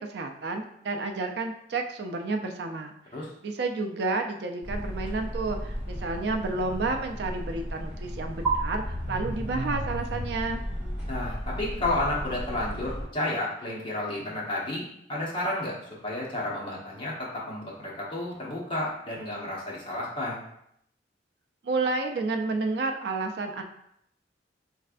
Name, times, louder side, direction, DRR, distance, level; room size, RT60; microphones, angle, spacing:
voice 1, 0.0-2.9 3.4-10.6 21.6-23.6, right 3 dB, 60° right, 4 dB, 0.4 m, -30 dB
sound 1, 4.6-13.0, right 1 dB, 10° right, 1.3 m, -33 dB
voice 2, 11.1-14.8 15.1-15.8 16.0-20.4, left 1 dB, 25° left, -5 dB, 1.0 m, -31 dB
4.5 x 3.2 x 2.4 m, 0.74 s
head